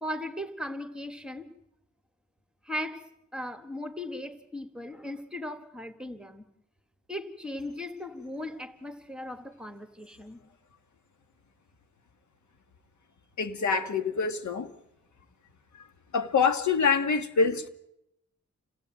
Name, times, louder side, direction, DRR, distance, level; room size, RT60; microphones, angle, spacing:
voice 1, 0.0-1.5 2.6-3.0 3.3-6.5 7.1-10.4 17.4-17.6, left 1 dB, 5° right, 1.8 m, -38 dB
voice 2, 13.4-14.7 16.1-17.7, left 5 dB, 75° left, 2.0 m, -25 dB
28.0 x 17.5 x 9.1 m
wide cardioid pair, 150°, 29 cm